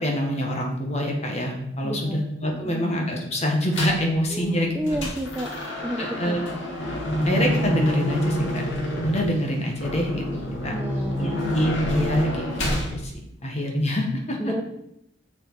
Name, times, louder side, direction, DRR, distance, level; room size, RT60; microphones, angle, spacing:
voice 1, 0.0-5.0 6.0-6.4 7.2-8.7 9.0-10.2 10.6-10.7 11.2-13.1 13.4-14.5, equal, 35° left, 1 dB, 1.8 m, -25 dB
voice 2, 1.8-2.3 2.6-2.9 4.3-5.5 5.8-6.4 10.7-11.3 14.4-14.6, equal, 10° right, 3 dB, 0.5 m, -31 dB
sound 1, 3.7-4.1 4.5-12.9, equal, 85° left, 2.3 m, -27 dB
6.7 x 6.5 x 4.8 m, 0.81 s
head